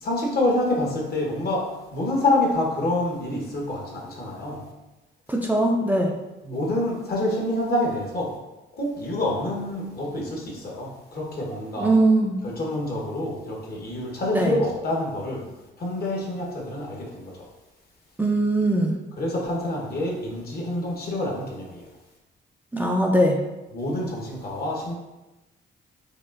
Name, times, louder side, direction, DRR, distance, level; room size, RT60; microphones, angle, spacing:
voice 1, 0.0-4.7 6.4-8.4 8.7-11.9 12.4-15.5 15.8-17.5 19.2-21.9 23.7-24.9, left 1 dB, 50° left, -1 dB, 1.1 m, -27 dB
voice 2, 5.3-6.1 11.8-12.4 14.3-14.5 18.2-19.0 22.7-23.4, right 1 dB, 10° right, 0 dB, 0.4 m, -20 dB
5.0 x 2.4 x 2.5 m, 1.1 s
cardioid pair, 90°, 20 cm